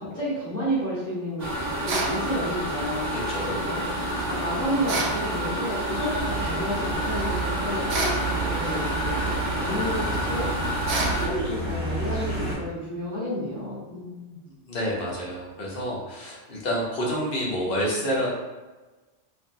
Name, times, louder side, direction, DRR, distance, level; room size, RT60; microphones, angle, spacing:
voice 1, 0.0-3.2 3.6-3.8 4.2-10.6 10.9-14.4, equal, 10° left, -14 dB, 1.3 m, -31 dB
sound 1, 1.4-11.3, right 2 dB, 40° right, 0.8 m, -28 dB
sound 2, 1.9-2.2 4.9-5.2 7.9-8.2 10.9-11.2, right 2 dB, 90° right, 0.3 m, -27 dB
voice 2, 3.1-3.6 14.5-18.3, equal, 55° left, -4 dB, 0.9 m, -28 dB
sound 3, 5.9-12.6, equal, 15° right, 1.2 m, -33 dB
3.1 x 2.5 x 2.6 m, 1.2 s
omnidirectional pair, 1.2 m